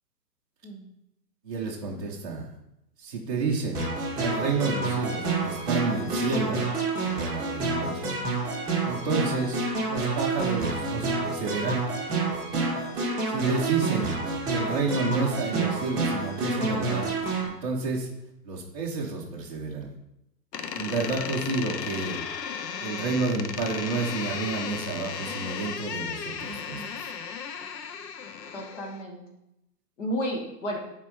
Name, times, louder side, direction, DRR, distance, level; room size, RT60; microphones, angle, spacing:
voice 1, 1.4-2.5 3.0-3.9 4.2-6.6 7.0-8.1 8.8-9.6 9.9-11.8 13.3-14.1 14.5-17.1 17.5-18.1 18.4-19.9 20.7-22.2 22.8-27.1, right 3 dB, 25° right, -6 dB, 0.6 m, -30 dB
sound 1, 3.7-17.5, right 3 dB, 10° right, 1.4 m, -28 dB
Door, 20.5-29.0, left 7 dB, 80° left, 0.8 m, -35 dB
voice 2, 26.5-26.9 28.5-29.2 30.0-30.8, equal, 45° left, 0 dB, 1.8 m, -33 dB
7.2 x 4.2 x 3.2 m, 0.84 s
hypercardioid pair, 160°, 48 cm